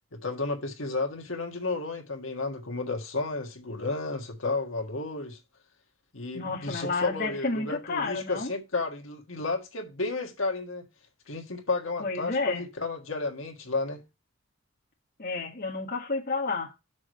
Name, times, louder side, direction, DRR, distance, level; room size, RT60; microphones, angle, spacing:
voice 1, 0.1-5.4 6.1-10.9 11.3-14.0, left 3 dB, 70° left, 1.6 m, -32 dB
voice 2, 6.3-8.5 12.0-12.6 15.2-16.7, left 3 dB, 45° left, 1.4 m, -30 dB
6.1 x 4.7 x 6.5 m
head